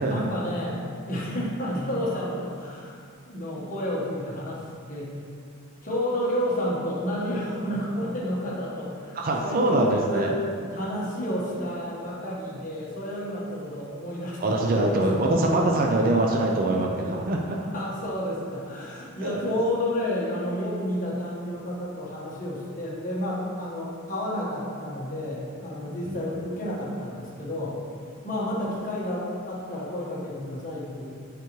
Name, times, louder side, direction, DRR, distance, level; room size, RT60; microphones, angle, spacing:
voice 1, 0.1-5.1 5.8-10.4 10.7-15.0 17.5-27.8 28.2-31.0, equal, 40° left, -6 dB, 1.3 m, -31 dB
voice 2, 9.2-10.3 14.4-17.6 19.2-19.4 26.0-26.2, right 2 dB, 40° right, 0 dB, 0.4 m, -23 dB
6.8 x 5.1 x 3.1 m, 2.2 s
head